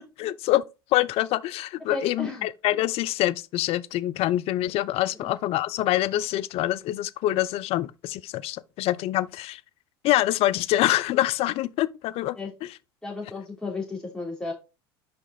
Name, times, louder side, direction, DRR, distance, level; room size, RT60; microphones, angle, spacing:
voice 1, 0.2-0.6 0.9-9.6 10.0-12.4, left 15 dB, 50° left, 0.5 m, -25 dB
voice 2, 1.9-2.5 5.2-5.3 12.4-12.5 13.0-14.5, left 3 dB, 5° left, 3.3 m, -34 dB
5.4 x 5.1 x 4.0 m
hypercardioid pair, 75°, 13 cm